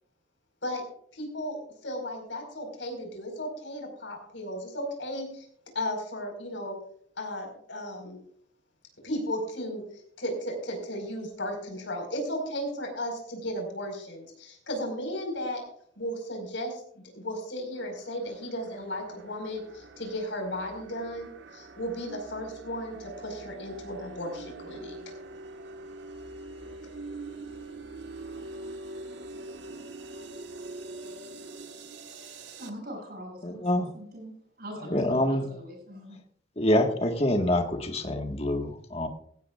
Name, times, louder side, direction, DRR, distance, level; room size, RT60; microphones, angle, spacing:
voice 1, 1.1-1.6 1.8-5.5 5.8-6.8 7.2-8.2 9.0-9.8 10.2-15.6 16.0-16.8 17.1-24.9, equal, 80° left, 3 dB, 5.0 m, -35 dB
sound 1, 17.8-32.7, right 2 dB, 75° right, 1.5 m, -44 dB
voice 2, 32.1-36.2, equal, 55° right, 0 dB, 7.4 m, -43 dB
voice 3, 33.4-33.9 34.9-35.4 36.6-39.1, left 1 dB, 35° left, 4 dB, 1.6 m, -26 dB
17.5 x 16.0 x 2.5 m, 0.64 s
head